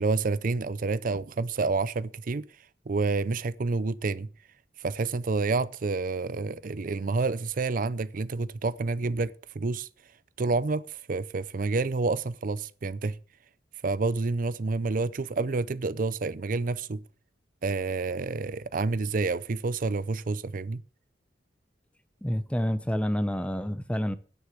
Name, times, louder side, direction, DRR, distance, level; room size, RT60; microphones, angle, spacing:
voice 1, 0.0-2.5 2.9-4.3 4.8-9.9 10.4-13.2 13.8-17.0 17.6-20.8, right 3 dB, 50° right, 0.5 m, -29 dB
voice 2, 22.2-24.1, equal, 5° left, 0.8 m, -28 dB
10.0 x 8.1 x 7.8 m
head